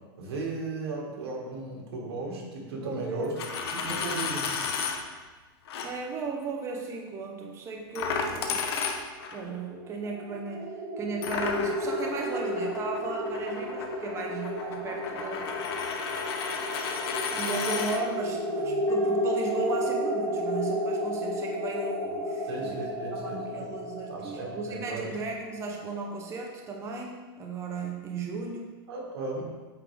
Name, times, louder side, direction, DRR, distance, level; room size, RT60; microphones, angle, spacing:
voice 1, 0.2-3.4 3.7-4.5 22.5-23.7 24.1-25.1 28.9-29.4, right 3 dB, 75° right, -2 dB, 1.8 m, -36 dB
voice 2, 2.7-3.3 5.8-8.7 9.3-10.7 11.0-15.5 17.3-22.8 23.1-28.7, right 3 dB, 20° right, 1 dB, 0.7 m, -36 dB
Coin (dropping), 3.2-5.0 5.7-5.9 8.0-9.4 11.2-18.0, left 5 dB, 80° left, 0.8 m, -33 dB
sound 1, 9.3-26.2, equal, 45° right, 1.1 m, -33 dB
sound 2, 18.9-24.3, left 5 dB, 25° left, 0.9 m, -39 dB
8.8 x 3.7 x 3.3 m, 1.3 s
supercardioid pair, 140°, 13 cm